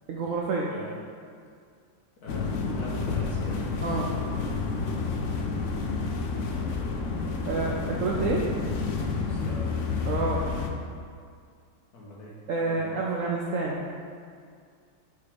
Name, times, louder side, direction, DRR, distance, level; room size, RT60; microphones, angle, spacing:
voice 1, 0.1-0.7 3.8-4.1 7.5-8.5 10.1-10.4 12.5-13.8, right 3 dB, 70° right, -3 dB, 0.7 m, -28 dB
voice 2, 2.2-2.5 2.8-4.2 6.5-7.1 9.2-9.8 11.9-12.4 12.6-13.0, left 1 dB, 60° left, -5 dB, 1.7 m, -43 dB
sound 1, 2.3-10.7, left 4 dB, 85° left, 0.6 m, -30 dB
6.6 x 3.5 x 5.0 m, 2.2 s
omnidirectional pair, 1.9 m